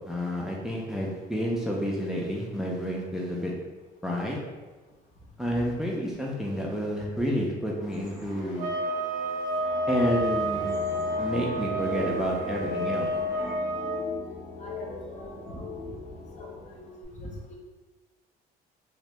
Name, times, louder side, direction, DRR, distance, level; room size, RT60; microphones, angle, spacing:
voice 1, 0.0-3.5 4.0-4.4 5.4-8.7 9.9-10.8 11.2-13.1, equal, 5° right, -3 dB, 0.5 m, -30 dB
sound 1, 7.8-13.6, left 1 dB, 65° left, 1.4 m, -46 dB
sound 2, 8.6-14.0, right 1 dB, 50° right, 0.5 m, -30 dB
sound 3, 9.5-17.0, left 3 dB, 90° left, 1.4 m, -39 dB
voice 2, 14.6-16.0 16.4-17.6, left 1 dB, 45° left, 0 dB, 0.7 m, -43 dB
2.9 x 2.6 x 3.3 m, 1.2 s
cardioid pair, 110°, 17 cm